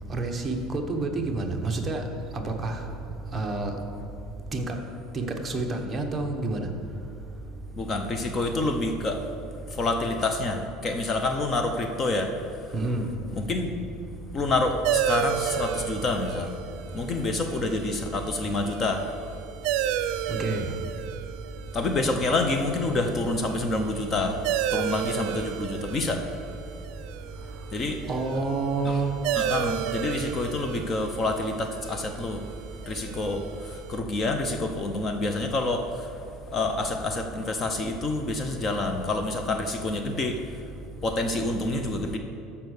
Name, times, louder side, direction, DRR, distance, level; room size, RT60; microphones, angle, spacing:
voice 1, 0.1-2.0 2.3-2.8 3.3-3.8 4.5-4.8 5.1-6.7 12.7-13.1 20.3-20.7 28.1-29.1, right 3 dB, 15° right, 2 dB, 1.1 m, -28 dB
voice 2, 7.8-9.2 9.7-12.3 13.4-13.7 14.3-16.5 16.9-19.1 21.7-24.4 24.7-26.2 27.7-28.0 28.8-29.0 29.3-32.4 32.9-36.1 36.5-40.4 41.0-42.2, left 2 dB, 25° left, 5 dB, 0.7 m, -27 dB
sound 1, 14.8-34.0, right 10 dB, 60° right, 0.6 m, -33 dB
13.5 x 5.6 x 6.5 m, 2.7 s
cardioid pair, 155°, 0 cm